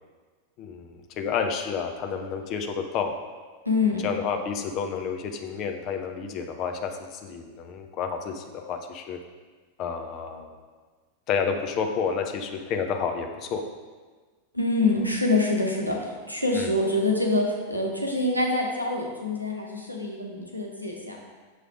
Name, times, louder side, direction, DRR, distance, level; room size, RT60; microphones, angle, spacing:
voice 1, 0.6-3.1 4.0-9.2 9.8-10.6 11.3-13.6 16.6-16.7, left 6 dB, 35° left, 5 dB, 0.6 m, -30 dB
voice 2, 3.6-4.1 14.5-21.2, left 2 dB, 90° right, 0 dB, 0.9 m, -25 dB
6.3 x 3.3 x 4.8 m, 1.4 s
figure-of-eight pair, 90°, 0 cm